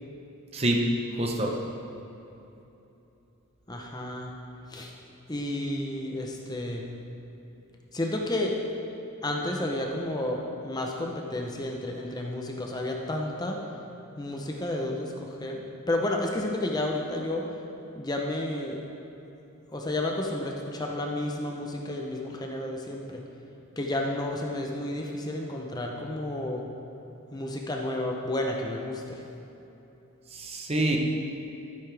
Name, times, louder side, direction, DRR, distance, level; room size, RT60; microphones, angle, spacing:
voice 1, 0.5-0.9 1.2-1.5 30.3-31.0, right 1 dB, 25° right, 1 dB, 0.8 m, -26 dB
voice 2, 3.7-4.3 4.7-4.9 5.3-6.9 7.9-8.6 9.2-13.6 14.2-17.6 18.0-18.8 19.7-23.2 23.8-26.7 27.3-29.2, left 1 dB, 20° left, 1 dB, 0.8 m, -31 dB
13.0 x 10.5 x 3.4 m, 3.0 s
head